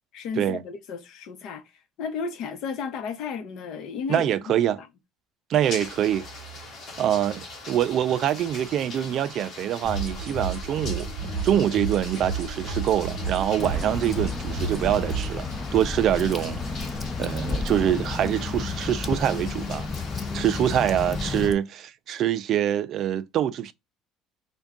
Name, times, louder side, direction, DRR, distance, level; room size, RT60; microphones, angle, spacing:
voice 1, 0.1-1.6 2.0-4.3 4.8-4.9, left 5 dB, 65° left, 0.8 m, -33 dB
voice 2, 4.1-4.8 5.5-6.3 7.0-11.1 11.4-15.5 15.7-16.9 17.2-19.9 20.3-23.7, right 10 dB, 50° right, 0.3 m, -25 dB
sound 1, 5.6-21.5, left 2 dB, 40° left, 1.4 m, -41 dB
sound 2, 9.8-15.3, right 3 dB, 20° right, 1.0 m, -32 dB
Water / Drip, 13.6-21.5, left 4 dB, 20° left, 0.4 m, -31 dB
3.4 x 2.2 x 3.6 m
cardioid pair, 135°, 0 cm